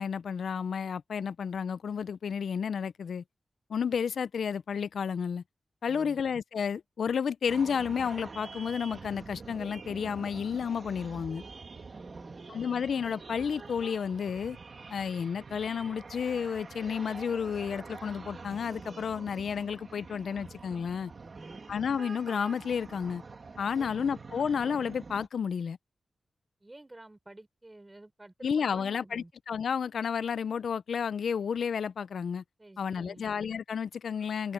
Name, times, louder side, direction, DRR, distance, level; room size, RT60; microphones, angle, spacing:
voice 1, 0.0-3.2 3.7-5.4 5.8-11.4 12.5-14.6 14.9-21.1 21.7-23.2 23.6-25.8 28.4-32.4 32.8-34.5, left 7 dB, 75° left, 0.4 m, -31 dB
voice 2, 5.9-6.2 11.9-12.5 21.2-21.6 23.8-24.1 26.6-29.3 32.6-33.3 34.4-34.5, right 2 dB, 15° right, 4.9 m, -51 dB
sound 1, 7.5-25.3, right 4 dB, 45° right, 2.4 m, -46 dB
wide cardioid pair, 145°, 0 cm